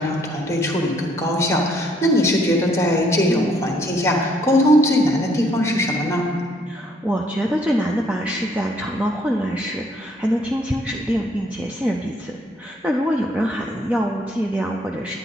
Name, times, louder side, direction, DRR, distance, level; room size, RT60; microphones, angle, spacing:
voice 1, 0.0-6.2, equal, 15° left, 0 dB, 1.1 m, -19 dB
voice 2, 3.3-3.7 6.7-15.1, equal, 5° right, 0 dB, 0.4 m, -24 dB
10.0 x 9.9 x 3.9 m, 2.2 s
head